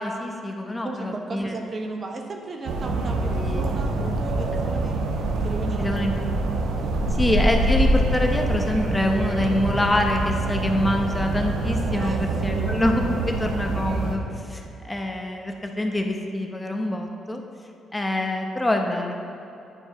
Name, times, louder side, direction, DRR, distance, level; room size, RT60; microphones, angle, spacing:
voice 1, 0.0-1.6 3.3-3.7 5.8-6.1 7.2-17.4 17.9-19.1, left 1 dB, 15° left, 3 dB, 0.7 m, -25 dB
voice 2, 0.8-5.0 5.4-6.3 6.8-7.0 11.9-12.7, right 3 dB, 40° right, 3 dB, 0.9 m, -35 dB
sound 1, 2.7-14.2, right 2 dB, 85° right, 0.9 m, -25 dB
9.7 x 5.1 x 4.8 m, 2.8 s
cardioid pair, 90°, 0 cm